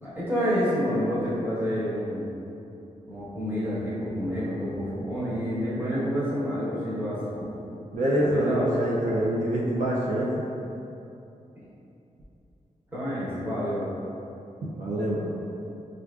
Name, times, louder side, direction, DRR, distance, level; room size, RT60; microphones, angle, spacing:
voice 1, 0.0-2.4 3.1-7.7 8.2-8.7 11.5-11.6 12.9-13.9, equal, 15° right, -10 dB, 1.0 m, -29 dB
voice 2, 7.9-10.4 14.7-15.3, right 1 dB, 65° right, -6 dB, 0.4 m, -25 dB
4.5 x 2.4 x 2.3 m, 2.8 s
wide cardioid pair, 125°, 13 cm